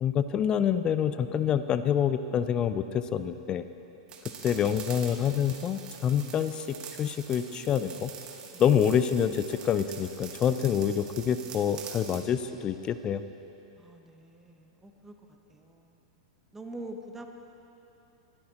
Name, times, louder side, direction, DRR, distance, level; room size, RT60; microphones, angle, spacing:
voice 1, 0.0-3.6 4.4-8.1 8.6-13.2, left 8 dB, 30° left, 12 dB, 0.5 m, -27 dB
sound 1, 4.1-12.3, right 7 dB, 35° right, 1.3 m, -45 dB
voice 2, 13.8-16.0 16.5-17.3, right 1 dB, 10° right, 4 dB, 0.9 m, -45 dB
19.5 x 13.0 x 2.9 m, 3.0 s
hypercardioid pair, 105°, 3 cm